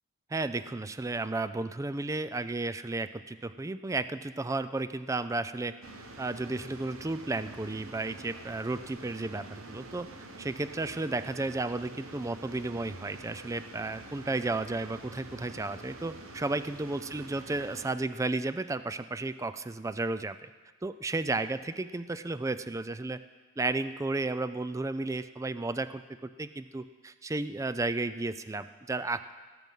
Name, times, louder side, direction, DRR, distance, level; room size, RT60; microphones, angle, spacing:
voice 1, 0.3-5.7 6.2-10.1 10.4-20.5 20.8-23.2 23.6-29.3, right 2 dB, 15° right, 13 dB, 0.3 m, -33 dB
sound 1, 5.8-17.9, right 2 dB, 75° right, 1.1 m, -47 dB
17.5 x 7.6 x 5.4 m, 1.4 s
head